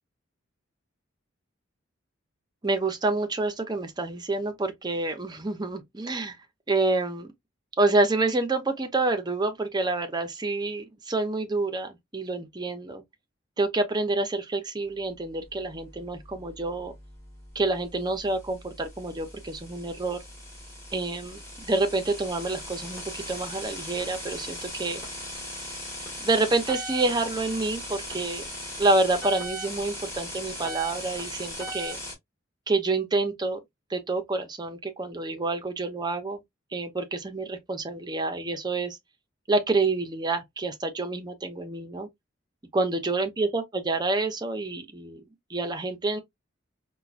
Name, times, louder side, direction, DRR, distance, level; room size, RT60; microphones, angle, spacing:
voice 1, 2.6-6.4 6.7-7.3 7.8-13.0 13.6-16.9 17.5-20.2 20.9-25.0 26.2-28.4 28.8-32.0 32.7-33.6 33.9-36.4 36.7-39.0 39.5-42.1 42.7-45.2 45.5-46.2, right 2 dB, 20° right, 0.6 m, -28 dB
sound 1, 15.3-32.1, equal, 15° left, 1.7 m, -39 dB
4.4 x 2.2 x 2.4 m
head